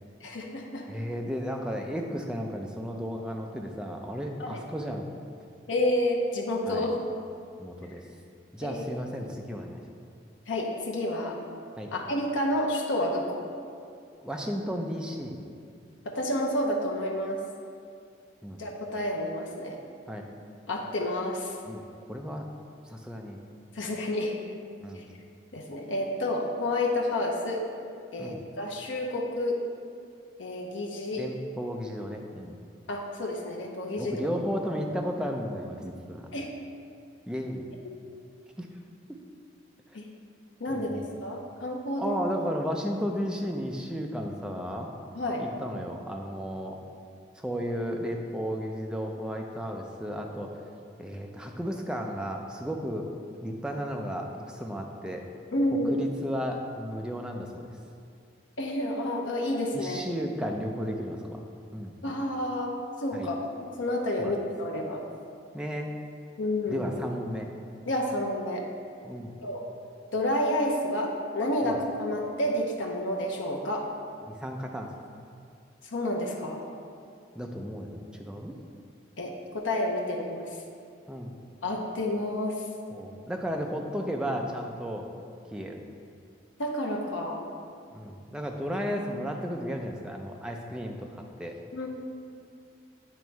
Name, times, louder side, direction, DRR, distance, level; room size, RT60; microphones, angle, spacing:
voice 1, 0.2-0.9 4.4-4.6 5.7-7.0 8.6-8.8 10.5-11.4 11.9-13.5 16.0-17.4 18.6-19.8 20.7-21.6 23.7-24.3 24.9-25.0 25.5-27.6 28.1-29.6 30.4-31.3 32.9-34.2 36.3-36.5 37.8-38.1 39.9-40.1 40.6-42.2 45.1-45.5 55.5-56.1 58.6-60.2 62.0-65.0 66.4-66.9 67.9-68.7 69.4-69.6 70.1-73.9 75.8-76.6 79.2-80.6 81.6-82.6 86.6-87.4 91.7-91.9, left 1 dB, 75° left, -1 dB, 0.7 m, -30 dB
voice 2, 0.9-5.2 6.7-6.9 7.6-8.0 8.5-9.8 11.8-11.9 14.2-15.5 18.4-18.6 20.1-20.3 21.7-22.5 22.9-23.4 24.8-25.1 28.2-28.4 31.1-32.6 34.0-36.3 37.3-37.6 38.6-38.7 39.1-39.2 40.7-41.1 42.0-44.9 45.4-46.8 47.4-50.5 51.0-53.1 53.4-55.3 55.9-57.7 59.7-61.4 61.7-62.0 63.1-63.3 64.2-64.3 65.5-65.9 66.7-67.5 69.0-69.4 71.6-71.8 74.3-74.9 77.4-78.5 81.1-81.4 82.9-85.1 85.5-85.8 87.9-91.1 91.4-91.6, equal, 5° right, 1 dB, 0.4 m, -34 dB
8.9 x 3.1 x 4.5 m, 2.4 s
head